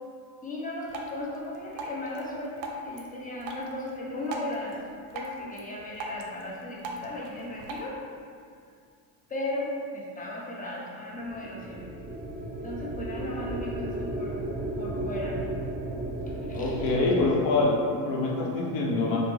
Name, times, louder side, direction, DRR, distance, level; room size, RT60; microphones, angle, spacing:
voice 1, 0.4-4.8 5.1-8.0 9.3-11.9 12.6-14.4 14.8-15.4 15.9-16.0 16.5-17.1, left 1 dB, 15° left, -4 dB, 0.6 m, -36 dB
Drip, 0.9-7.9, equal, 70° right, 0.6 m, -40 dB
sound 1, 11.2-17.3, right 1 dB, 20° right, 0.3 m, -34 dB
voice 2, 16.5-19.2, left 2 dB, 65° left, -2 dB, 0.8 m, -25 dB
3.2 x 2.1 x 3.3 m, 2.2 s
supercardioid pair, 85°, 48 cm